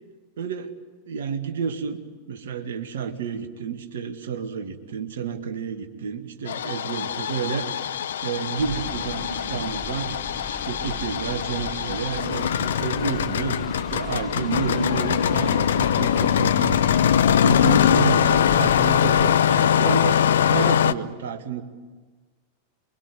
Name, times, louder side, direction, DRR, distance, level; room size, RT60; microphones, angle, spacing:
voice 1, 0.4-0.7 1.1-2.0 2.3-7.7 8.2-10.1 10.5-16.8 17.2-21.6, right 6 dB, 60° right, 6 dB, 2.2 m, -30 dB
Engine starting, 6.5-20.9, left 9 dB, 65° left, 0.7 m, -22 dB
sound 1, 8.2-8.3 8.7-10.1 10.5-10.6 10.9-11.0 11.3-13.2 13.5-13.8 14.3-16.3, right 1 dB, 85° right, 2.0 m, -37 dB
sound 2, 8.6-19.3, left 2 dB, 10° left, 2.8 m, -37 dB
28.0 x 23.5 x 8.1 m, 1.3 s
figure-of-eight pair, 90°, 0 cm